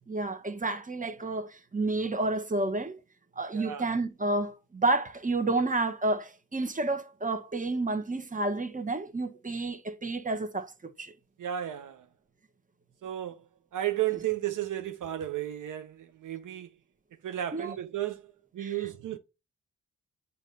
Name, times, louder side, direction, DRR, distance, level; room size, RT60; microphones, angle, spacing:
voice 1, 0.1-2.9 3.4-10.7 11.0-11.1 17.5-17.7 18.6-18.7, right 2 dB, 25° right, 1.1 m, -30 dB
voice 2, 3.5-3.9 11.4-12.1 13.0-13.4 13.7-16.8 17.2-19.2, right 12 dB, 75° right, 0.7 m, -33 dB
7.2 x 2.8 x 5.3 m
supercardioid pair, 45°, 31 cm